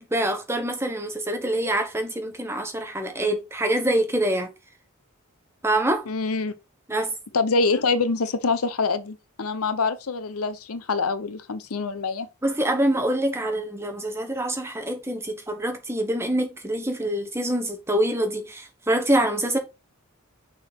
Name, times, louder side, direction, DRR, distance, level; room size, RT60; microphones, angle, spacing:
voice 1, 0.0-4.5 5.6-6.0 6.9-7.1 12.4-19.6, right 1 dB, 10° right, 1.0 m, -25 dB
voice 2, 6.1-6.5 7.3-12.3, left 4 dB, 85° left, 0.7 m, -25 dB
6.4 x 4.0 x 4.4 m
head